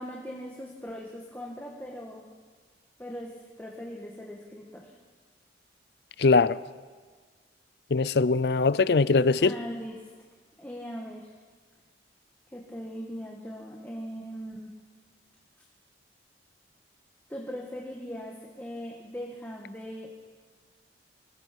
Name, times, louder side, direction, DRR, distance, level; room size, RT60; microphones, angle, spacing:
voice 1, 0.0-2.2 3.0-4.9 9.4-10.0 10.6-11.3 12.5-14.7 17.3-20.1, equal, 10° left, 1.8 m, -40 dB
voice 2, 6.2-6.6 7.9-9.5, left 4 dB, 60° left, 0.5 m, -21 dB
26.0 x 21.5 x 5.4 m
head